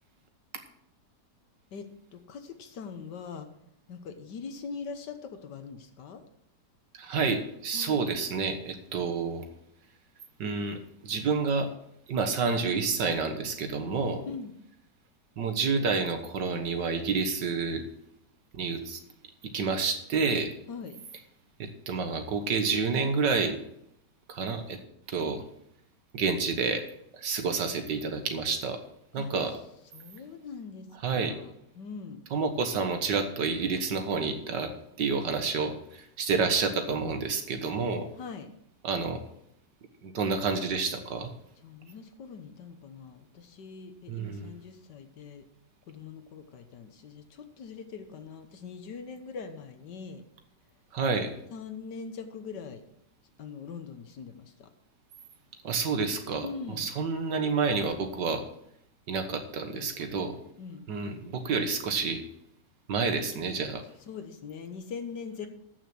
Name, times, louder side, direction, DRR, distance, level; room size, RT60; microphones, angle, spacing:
voice 1, 1.7-3.5 3.9-6.2 7.7-8.0 14.3-14.5 20.7-21.0 29.1-29.3 29.9-32.2 38.2-38.5 41.6-45.4 45.9-50.2 51.5-52.8 53.4-54.7 56.4-56.9 59.7-60.1 60.6-60.8 64.1-65.5, left 5 dB, 80° left, 8 dB, 1.7 m, -42 dB
voice 2, 6.9-9.5 10.4-11.7 12.1-14.2 15.4-17.8 18.5-19.0 19.5-20.5 21.6-23.6 24.3-24.8 25.1-25.4 26.1-26.8 27.1-28.8 29.1-29.6 31.0-31.4 32.3-34.7 35.0-38.1 38.8-39.2 40.0-41.3 44.1-44.5 50.9-51.3 55.6-58.4 59.1-60.3 60.9-62.2 62.9-63.8, right 4 dB, 80° right, 7 dB, 2.0 m, -29 dB
13.0 x 6.4 x 6.1 m, 0.75 s
omnidirectional pair, 1.9 m